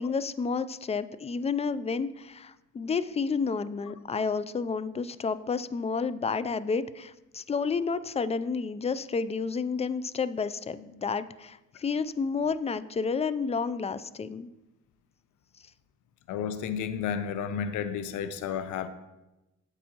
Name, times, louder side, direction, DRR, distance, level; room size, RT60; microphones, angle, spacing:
voice 1, 0.0-14.5, left 5 dB, 20° left, 15 dB, 0.3 m, -30 dB
voice 2, 16.3-18.9, left 7 dB, 80° left, 11 dB, 0.6 m, -32 dB
9.9 x 7.3 x 2.9 m, 0.99 s
cardioid pair, 90°, 30 cm